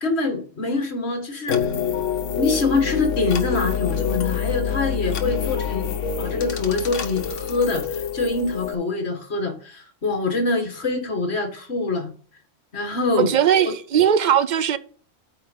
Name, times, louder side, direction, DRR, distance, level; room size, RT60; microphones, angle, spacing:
voice 1, 0.0-1.7 2.3-12.1 12.7-13.3 13.6-13.7, left 3 dB, 60° left, 1.9 m, -25 dB
sound 1, 1.5-8.7, left 7 dB, 75° left, 1.3 m, -26 dB
voice 2, 13.2-14.8, right 9 dB, 55° right, 0.5 m, -19 dB
8.7 x 4.3 x 5.2 m
omnidirectional pair, 1.3 m